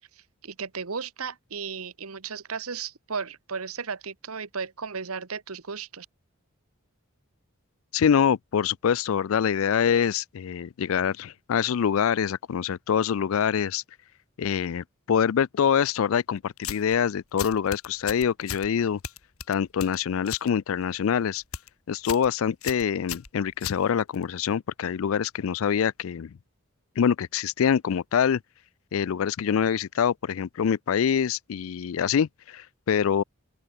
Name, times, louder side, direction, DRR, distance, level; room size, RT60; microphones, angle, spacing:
voice 1, 0.4-6.1, right 5 dB, 90° right, 1.3 m, -35 dB
voice 2, 7.9-13.8 14.4-19.0 19.5-21.4 21.9-26.4 27.0-28.4 28.9-33.2, left 7 dB, 70° left, 0.4 m, -25 dB
sound 1, 16.6-17.0 17.4-18.7 19.0-20.5 20.8-21.1 21.4-21.7 22.0-22.3 22.6-24.2, left 8 dB, 85° left, 2.0 m, -36 dB
open air
head